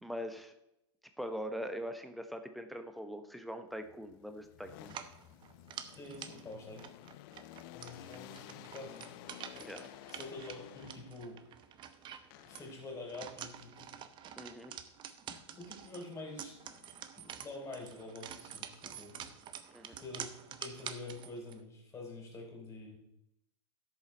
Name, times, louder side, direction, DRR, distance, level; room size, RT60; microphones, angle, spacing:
voice 1, 0.0-0.5 1.2-5.1 9.6-9.9 14.4-14.7 19.7-20.0, equal, ahead, 7 dB, 0.9 m, -42 dB
sound 1, 3.8-11.4 12.3-13.1 16.3-17.1 17.6-19.9, left 14 dB, 50° left, 0.5 m, -54 dB
sound 2, 4.8-21.6, right 9 dB, 30° right, 0.9 m, -48 dB
voice 2, 6.0-6.8 7.7-9.1 10.1-11.4 12.4-13.9 15.5-16.6 17.2-19.3 19.9-23.0, left 2 dB, 20° left, 0 dB, 4.3 m, -47 dB
12.5 x 7.2 x 4.5 m, 0.83 s
hypercardioid pair, 110°, 15 cm